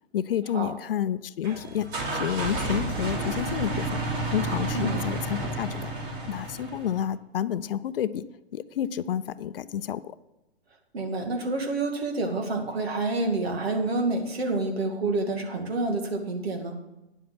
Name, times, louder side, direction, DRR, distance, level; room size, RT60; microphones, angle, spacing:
voice 1, 0.1-3.9 4.3-5.9 6.3-8.2 8.5-10.1, left 10 dB, 60° left, 15 dB, 0.6 m, -30 dB
sound 1, 1.4-7.0, right 2 dB, 50° right, 3.3 m, -31 dB
voice 2, 4.7-5.1 10.9-16.7, right 2 dB, 70° right, 4 dB, 2.4 m, -28 dB
10.0 x 7.6 x 6.0 m, 0.98 s
figure-of-eight pair, 115°, 32 cm